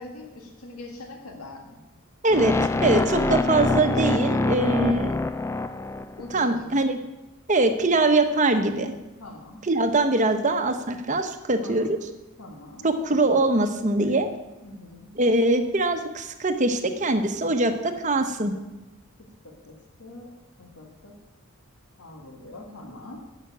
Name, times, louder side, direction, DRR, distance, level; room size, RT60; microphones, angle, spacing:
voice 1, 0.0-1.8 4.6-5.1 6.2-6.9 9.2-9.6 11.6-12.0 12.4-12.9 14.6-15.1 18.1-18.7 19.2-21.2 22.0-23.3, left 2 dB, 80° left, 2 dB, 1.8 m, -43 dB
voice 2, 2.2-2.5 2.8-5.1 6.3-7.0 7.5-8.9 9.7-12.0 12.8-14.3 15.2-18.5, right 2 dB, 35° right, 7 dB, 1.0 m, -22 dB
sound 1, 2.3-6.4, left 2 dB, 10° left, 0.3 m, -25 dB
11.5 x 5.8 x 9.0 m, 1.1 s
head